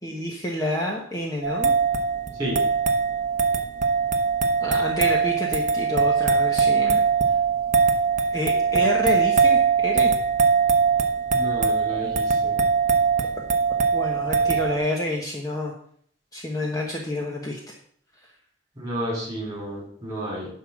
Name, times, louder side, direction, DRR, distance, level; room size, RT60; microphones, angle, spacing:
voice 1, 0.0-1.7 4.6-7.0 8.3-10.1 13.9-15.7 16.3-17.8 18.2-18.3, left 1 dB, 20° left, -1 dB, 1.2 m, -29 dB
sound 1, 1.4-14.8, right 5 dB, 40° right, 0.9 m, -21 dB
voice 2, 11.3-12.6 18.8-20.5, right 1 dB, 20° right, -3 dB, 4.7 m, -31 dB
11.0 x 3.8 x 7.5 m, 0.62 s
head